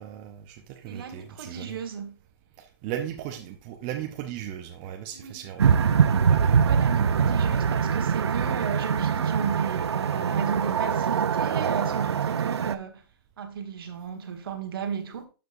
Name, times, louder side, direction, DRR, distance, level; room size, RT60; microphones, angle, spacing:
voice 1, 0.0-1.8 2.6-5.9 6.3-6.6, right 11 dB, 25° right, 0.7 m, -37 dB
voice 2, 0.8-2.2 5.1-5.5 6.4-13.0 13.4-15.2, right 6 dB, 60° right, 1.5 m, -34 dB
sound 1, 5.6-12.8, right 7 dB, 85° right, 0.6 m, -23 dB
12.5 x 5.1 x 2.6 m
hypercardioid pair, 155°, 14 cm